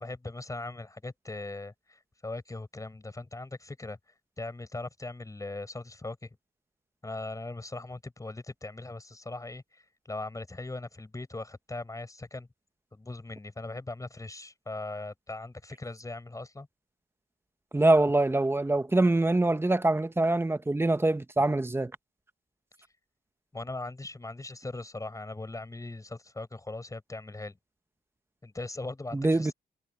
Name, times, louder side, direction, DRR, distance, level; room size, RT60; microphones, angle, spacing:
voice 1, 0.0-4.0 4.4-6.3 7.0-12.5 12.9-16.7 23.5-27.6 28.4-29.5, left 2 dB, 20° left, 6.3 m, -39 dB
voice 2, 17.7-21.9 29.1-29.5, right 2 dB, 15° right, 1.1 m, -24 dB
cardioid pair, 95°, 17 cm